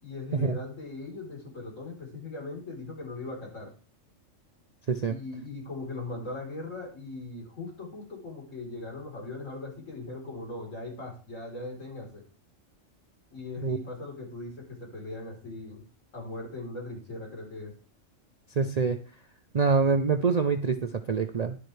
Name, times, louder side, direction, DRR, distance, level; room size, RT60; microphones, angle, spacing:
voice 1, 0.0-3.7 5.1-12.2 13.3-14.5 14.8-15.8 16.1-17.7, left 2 dB, 70° left, -1 dB, 4.2 m, -39 dB
voice 2, 18.6-19.0 19.5-21.6, right 5 dB, 50° right, 8 dB, 0.5 m, -25 dB
11.0 x 10.5 x 3.3 m, 0.39 s
omnidirectional pair, 1.4 m